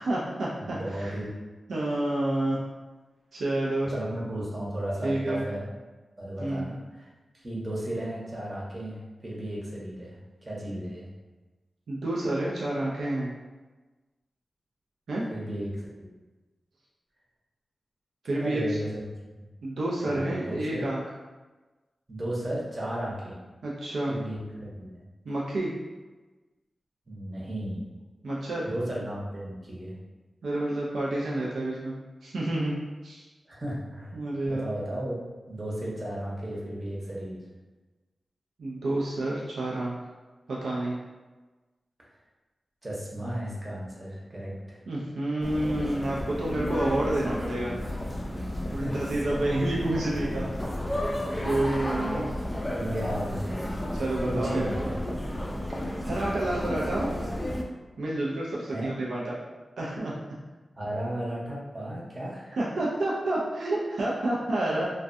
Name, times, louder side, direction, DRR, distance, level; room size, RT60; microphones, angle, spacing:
voice 1, 0.0-1.1 1.7-2.6 3.3-3.9 5.0-5.4 6.4-6.7 11.9-13.3 15.1-15.3 18.2-18.8 19.6-21.0 23.6-24.2 25.2-25.7 28.2-28.7 30.4-32.8 33.0-33.2 34.1-34.7 38.6-40.0 40.5-41.0 44.9-47.8 48.7-50.5 50.9-51.1 51.4-52.2 53.9-54.9 55.7-57.1 58.0-59.4 59.8-60.1 62.6-64.9, right 1 dB, 85° right, -5 dB, 0.4 m, -29 dB
voice 2, 0.6-1.3 3.9-5.7 6.2-7.1 7.3-10.2 10.4-11.1 15.3-16.1 18.3-19.0 19.3-19.4 20.0-20.9 22.1-23.4 24.1-25.0 27.1-27.8 28.6-29.9 33.5-34.2 34.5-35.2 35.5-37.4 42.8-44.8 48.7-48.9 52.1-52.2 52.7-53.7 54.2-54.9 58.7-58.9 60.8-62.6, right 1 dB, 35° right, -5 dB, 0.8 m, -34 dB
sound 1, 45.4-57.6, left 1 dB, 20° left, 0.4 m, -32 dB
2.3 x 2.2 x 2.5 m, 1.2 s
cardioid pair, 50°, 0 cm